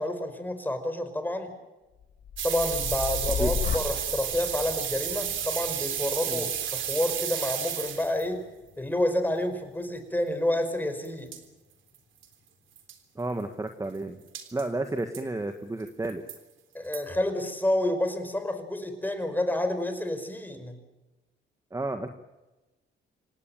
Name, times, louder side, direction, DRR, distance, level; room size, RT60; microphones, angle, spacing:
voice 1, 0.0-1.5 2.4-8.4 8.8-11.3 16.7-20.7, left 1 dB, 10° left, 8 dB, 5.2 m, -29 dB
sound 1, 2.0-10.0 10.5-11.0, left 7 dB, 55° left, 4.4 m, -37 dB
sound 2, 2.4-8.3 11.0-11.1 11.3-11.4 11.9-12.0 12.2-12.3 12.8-12.9 14.3-14.6 15.1-15.2 15.9-16.4 16.9-17.0, right 9 dB, 75° right, 3.6 m, -32 dB
voice 2, 13.1-14.2 14.5-16.2 21.7-22.1, right 2 dB, 15° right, 7 dB, 1.6 m, -31 dB
27.0 x 18.5 x 8.9 m, 1.1 s
cardioid pair, 90°, 20 cm